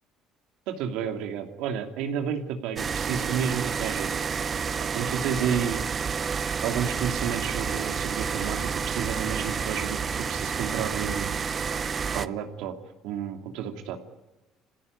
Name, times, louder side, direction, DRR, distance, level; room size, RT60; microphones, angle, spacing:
voice 1, 0.7-4.2 4.9-5.8 6.6-11.5 12.1-12.7 13.0-14.0, right 8 dB, 80° right, 6 dB, 2.7 m, -31 dB
sound 1, 2.8-12.3, right 6 dB, 35° right, 0.7 m, -29 dB
26.5 x 16.0 x 9.6 m, 1.1 s
cardioid pair, 105°, 0 cm